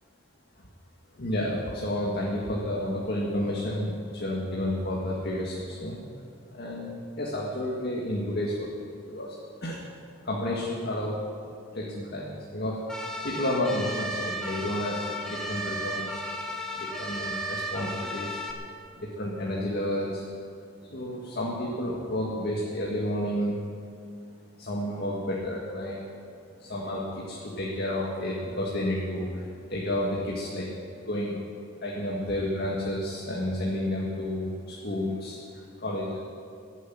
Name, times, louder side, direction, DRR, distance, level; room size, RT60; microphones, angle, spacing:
voice 1, 1.2-6.0 6.5-8.7 9.1-9.9 10.2-11.2 11.7-12.8 13.2-16.2 16.7-18.4 19.0-20.3 20.9-23.6 24.6-26.0 26.6-30.7 31.0-31.4 31.8-36.2, left 1 dB, 55° left, -3 dB, 1.9 m, -31 dB
sound 1, 12.9-18.5, equal, 5° left, 1.5 m, -34 dB
16.5 x 8.1 x 9.4 m, 2.5 s
head